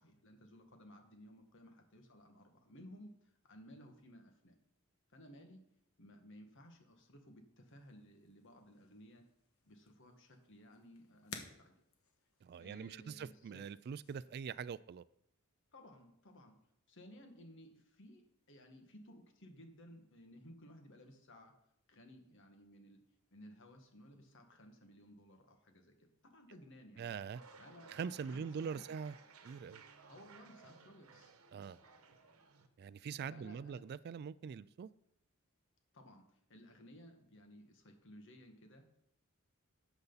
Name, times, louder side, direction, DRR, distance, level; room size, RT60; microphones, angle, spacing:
voice 1, 0.0-4.6 5.1-5.6 6.0-9.2 9.6-11.7 12.6-13.7 15.7-16.6 16.9-21.5 21.9-23.0 23.3-27.2 27.6-27.9 28.2-28.9 30.1-31.3 33.3-33.8 35.9-39.0, equal, 60° left, 1.8 m, -58 dB
sound 1, 7.6-14.6, left 5 dB, 85° left, 1.4 m, -57 dB
voice 2, 12.4-15.0 27.0-27.4 27.9-29.2 29.4-29.8 31.5-31.8 32.8-34.9, right 6 dB, 50° right, 0.3 m, -43 dB
sound 2, 27.3-32.7, right 4 dB, 80° right, 1.1 m, -59 dB
12.5 x 8.1 x 4.1 m
head